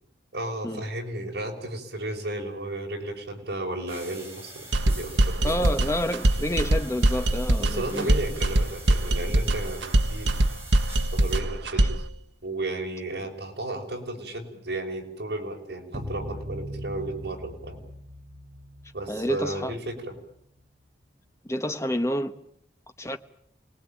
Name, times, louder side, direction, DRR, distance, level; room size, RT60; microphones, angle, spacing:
voice 1, 0.3-5.6 7.6-10.4 11.1-12.0 12.4-17.8 18.9-20.2, right 2 dB, 65° right, 5.9 m, -34 dB
sound 1, 3.9-11.4, right 2 dB, 15° right, 6.7 m, -45 dB
sound 2, 4.7-12.1, right 1 dB, 85° right, 1.1 m, -23 dB
voice 2, 5.4-8.1 11.8-11.9 19.1-19.7 21.4-22.3 23.0-23.2, equal, 15° left, 1.1 m, -29 dB
sound 3, 15.9-20.4, equal, 40° right, 1.5 m, -40 dB
28.5 x 20.0 x 9.0 m
head